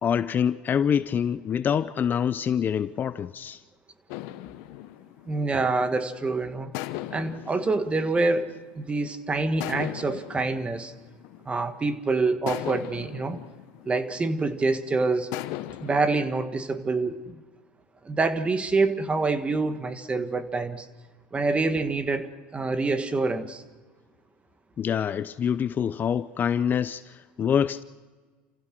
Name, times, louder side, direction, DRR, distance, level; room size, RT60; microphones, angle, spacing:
voice 1, 0.0-3.6 24.8-27.8, left 8 dB, 35° left, 0.6 m, -26 dB
sound 1, 4.1-6.1 6.7-9.0 9.6-11.9 12.5-14.6 15.3-16.2, left 15 dB, 65° left, 1.1 m, -38 dB
voice 2, 5.3-6.7 7.1-10.9 11.4-13.4 13.8-15.3 15.8-17.3 18.0-20.9 21.3-23.6, right 3 dB, 20° right, 1.6 m, -26 dB
29.5 x 15.5 x 6.2 m
supercardioid pair, 100°, 6 cm